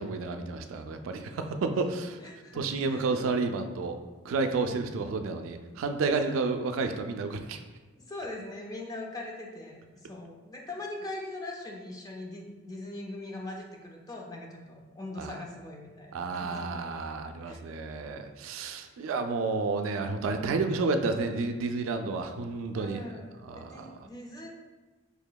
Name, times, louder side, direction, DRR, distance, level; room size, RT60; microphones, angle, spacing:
voice 1, 0.0-2.2 2.5-4.0 4.2-7.6 15.2-15.3 16.1-23.0 23.5-23.9, right 3 dB, 85° right, 7 dB, 0.3 m, -31 dB
voice 2, 2.2-3.0 4.4-4.7 6.0-6.2 8.0-17.0 17.5-17.6 18.4-18.6 22.7-24.5, left 2 dB, 20° left, 0 dB, 0.4 m, -41 dB
4.8 x 2.8 x 2.2 m, 1.2 s
head